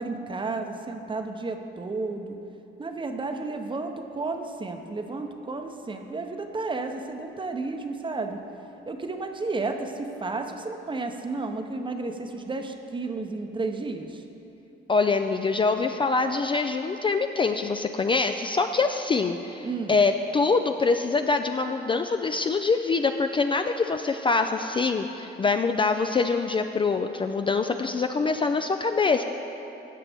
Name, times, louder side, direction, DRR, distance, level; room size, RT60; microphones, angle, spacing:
voice 1, 0.0-2.4 2.8-8.4 8.9-14.2 19.6-20.0, right 3 dB, 25° right, 5 dB, 0.8 m, -32 dB
voice 2, 14.9-29.2, left 4 dB, 25° left, 7 dB, 0.3 m, -24 dB
13.0 x 7.8 x 3.5 m, 2.9 s
cardioid pair, 90°, 20 cm